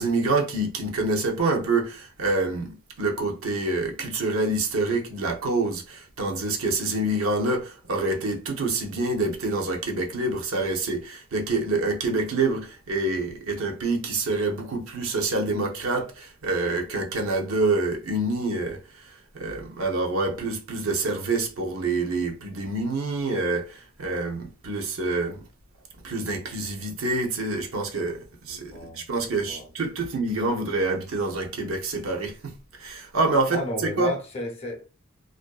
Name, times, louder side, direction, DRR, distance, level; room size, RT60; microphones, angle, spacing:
voice 1, 0.0-18.8 19.3-25.4 26.0-32.5 32.8-34.1, right 2 dB, 70° right, 0.7 m, -27 dB
voice 2, 28.5-29.7 33.5-34.9, left 1 dB, 30° left, 0.6 m, -34 dB
2.5 x 2.5 x 2.3 m
head